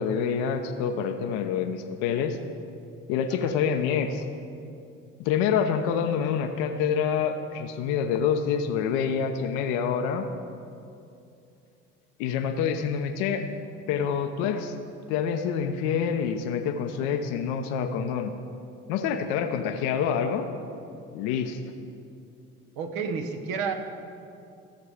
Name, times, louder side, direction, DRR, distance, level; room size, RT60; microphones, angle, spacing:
voice 1, 0.0-2.4 3.1-4.2 5.2-10.3 12.2-13.5 13.9-14.7 15.1-18.3 18.9-20.5 21.1-21.6, left 7 dB, 70° left, 6 dB, 0.8 m, -27 dB
voice 2, 22.8-23.7, right 5 dB, 65° right, 5 dB, 1.2 m, -31 dB
14.0 x 6.7 x 5.0 m, 2.5 s
hypercardioid pair, 65°, 37 cm